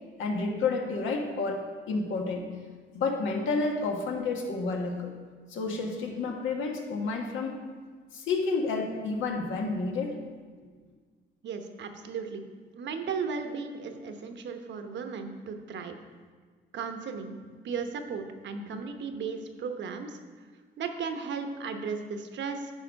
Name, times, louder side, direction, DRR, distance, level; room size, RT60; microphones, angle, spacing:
voice 1, 0.2-2.4 2.9-5.1 5.5-7.6 8.1-10.2, left 3 dB, 80° left, 2 dB, 1.4 m, -30 dB
voice 2, 11.4-12.4 12.7-16.0 16.7-17.3 17.6-20.2 20.8-22.7, right 5 dB, 65° right, 6 dB, 1.0 m, -35 dB
9.9 x 4.9 x 5.3 m, 1.5 s
cardioid pair, 90°, 20 cm